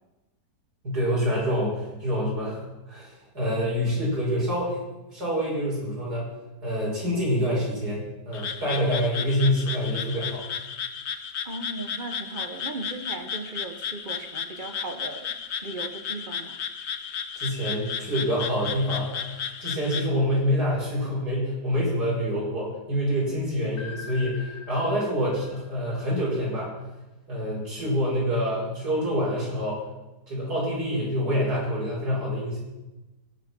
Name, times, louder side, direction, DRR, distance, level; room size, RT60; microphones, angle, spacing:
voice 1, 0.8-4.8 5.1-6.3 6.6-10.4 17.4-26.7 27.3-29.8 30.3-32.6, equal, 65° right, -5 dB, 6.5 m, -26 dB
Frog, 8.3-20.1, left 7 dB, 55° left, 0.9 m, -34 dB
voice 2, 11.4-15.3 15.6-16.6, right 2 dB, 35° right, 8 dB, 1.0 m, -37 dB
sound 1, 23.8-26.7, left 4 dB, 90° left, 2.0 m, -44 dB
17.0 x 8.8 x 6.1 m, 1.0 s
omnidirectional pair, 1.8 m